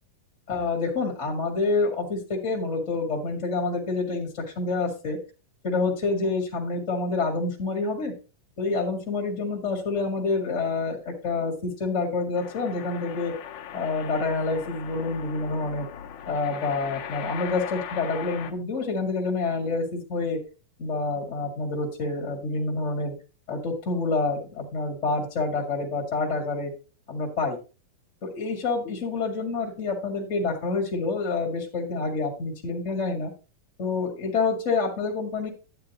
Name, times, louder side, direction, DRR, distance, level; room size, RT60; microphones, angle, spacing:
voice 1, 0.5-5.2 5.6-8.1 8.6-13.3 13.7-15.9 16.3-20.4 20.8-23.1 23.5-26.7 27.1-27.6 28.2-33.3 33.8-35.5, left 3 dB, 25° left, 1 dB, 1.9 m, -27 dB
sound 1, 12.3-18.5, left 8 dB, 70° left, 2.3 m, -39 dB
11.5 x 9.3 x 3.0 m, 0.32 s
omnidirectional pair, 3.7 m